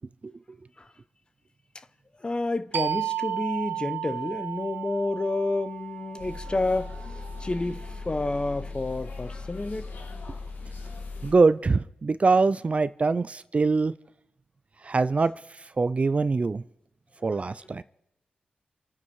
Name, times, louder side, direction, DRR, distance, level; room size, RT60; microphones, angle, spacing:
voice 1, 2.2-6.9 7.4-9.9 17.2-17.4, left 2 dB, 25° left, 1.0 m, -29 dB
sound 1, 2.7-8.0, right 12 dB, 85° right, 1.0 m, -34 dB
sound 2, 6.2-11.3, left 3 dB, 70° left, 3.0 m, -38 dB
voice 2, 11.2-13.9 14.9-15.3 15.8-16.6 17.2-17.8, right 4 dB, 35° right, 0.5 m, -23 dB
29.0 x 9.6 x 4.8 m
cardioid pair, 80°, 4 cm